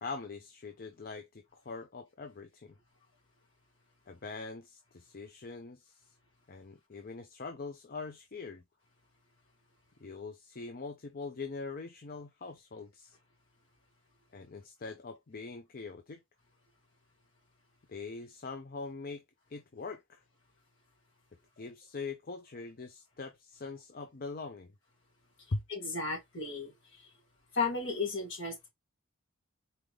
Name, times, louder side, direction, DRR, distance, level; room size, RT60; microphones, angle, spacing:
voice 1, 0.0-2.7 4.1-6.1 6.5-8.6 10.0-13.2 14.3-16.2 17.9-19.2 19.5-20.2 21.6-24.7 25.5-25.6, left 4 dB, 45° left, 0.6 m, -42 dB
voice 2, 25.7-26.7 27.5-28.7, left 4 dB, 60° left, 2.5 m, -34 dB
4.4 x 3.7 x 3.2 m
head